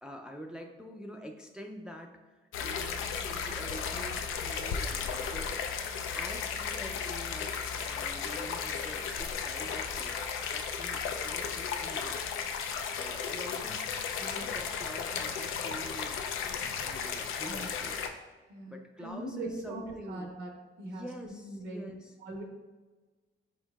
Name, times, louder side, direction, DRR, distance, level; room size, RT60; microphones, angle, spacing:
voice 1, 0.0-2.2 2.6-5.6 6.1-10.2 10.4-12.2 12.5-16.2 16.8-18.0 18.6-20.3 20.8-22.1, equal, 5° right, 2 dB, 0.3 m, -46 dB
sound 1, 2.5-18.1, left 6 dB, 85° left, 0.4 m, -35 dB
voice 2, 17.5-17.8 18.5-20.5 20.8-22.4, right 2 dB, 85° right, 1 dB, 0.8 m, -41 dB
4.5 x 4.5 x 2.3 m, 1.3 s
cardioid pair, 90°, 20 cm